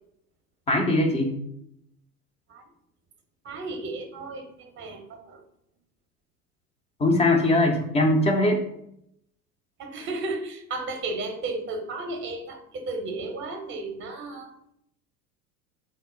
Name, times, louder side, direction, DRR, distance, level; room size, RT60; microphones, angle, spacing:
voice 1, 0.7-1.4 7.0-8.6, left 1 dB, 15° left, 2 dB, 0.4 m, -21 dB
voice 2, 3.4-5.4 9.8-14.5, right 2 dB, 25° right, 5 dB, 0.7 m, -34 dB
3.7 x 2.0 x 3.6 m, 0.76 s
hypercardioid pair, 80°, 47 cm